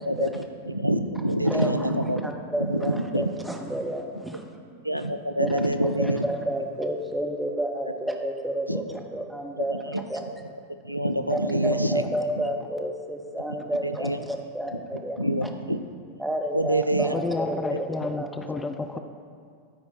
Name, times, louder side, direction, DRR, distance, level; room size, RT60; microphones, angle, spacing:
voice 1, 0.1-2.3 2.6-3.3 4.8-6.2 8.7-8.8 9.7-10.0 10.8-12.0 13.8-14.2 14.9-15.8 16.5-17.1 17.7-17.8, right 1 dB, 90° right, 9 dB, 0.3 m, -26 dB
voice 2, 1.4-1.9 2.2-4.5 5.4-5.6 6.0-10.2 11.3-15.5 16.2-18.3, right 1 dB, 5° right, 2 dB, 0.9 m, -30 dB
voice 3, 17.1-19.0, left 3 dB, 15° left, 7 dB, 0.4 m, -30 dB
13.0 x 4.3 x 4.3 m, 2.2 s
figure-of-eight pair, 90°, 0 cm